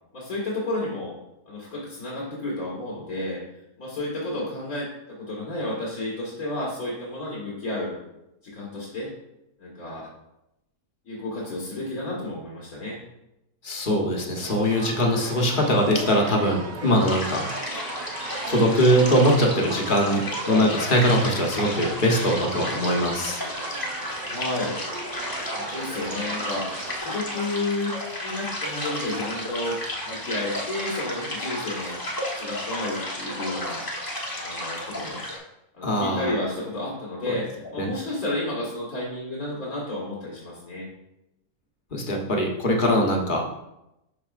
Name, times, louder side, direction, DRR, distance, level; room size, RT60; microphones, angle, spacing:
voice 1, 0.1-1.1 1.5-3.4 3.8-8.0 8.4-9.1 9.6-10.1 11.1-13.0 24.3-24.8 25.5-26.7 27.0-29.8 30.0-32.0 32.4-33.8 34.4-35.2 35.7-40.9, left 2 dB, 80° left, -6 dB, 2.2 m, -31 dB
voice 2, 13.6-17.5 18.5-20.2 20.5-23.4 35.8-36.3 37.8-37.9 41.9-43.4, equal, 40° left, 0 dB, 1.1 m, -22 dB
sound 1, 14.4-27.0, right 4 dB, 80° right, 0.3 m, -38 dB
sound 2, 17.0-35.4, left 1 dB, 15° left, 1.1 m, -32 dB
11.5 x 4.3 x 2.5 m, 0.89 s
omnidirectional pair, 1.5 m